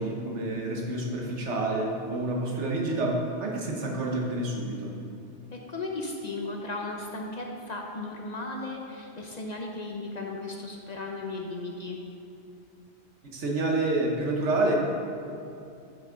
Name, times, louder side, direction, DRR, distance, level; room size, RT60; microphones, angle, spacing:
voice 1, 0.0-4.9 13.3-14.8, right 2 dB, 80° right, -1 dB, 1.4 m, -28 dB
voice 2, 5.5-12.0, left 2 dB, 45° left, 0 dB, 0.7 m, -36 dB
10.5 x 5.9 x 3.8 m, 2.6 s
omnidirectional pair, 1.2 m